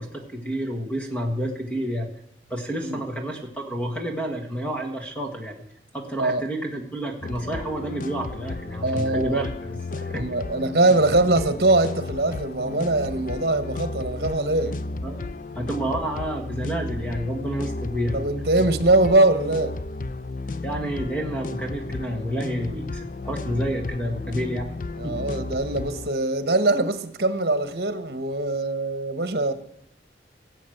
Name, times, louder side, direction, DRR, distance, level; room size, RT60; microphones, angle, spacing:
voice 1, 0.0-2.1 2.5-5.6 5.9-10.3 15.0-15.2 15.6-18.3 18.6-18.7 20.6-24.7 25.0-25.2, right 1 dB, 5° left, 1.8 m, -29 dB
sound 1, 7.2-26.1, left 3 dB, 45° left, 0.5 m, -33 dB
voice 2, 8.8-9.5 10.1-14.8 18.1-19.8 25.0-29.5, right 2 dB, 60° right, 1.4 m, -22 dB
18.0 x 8.1 x 8.0 m
head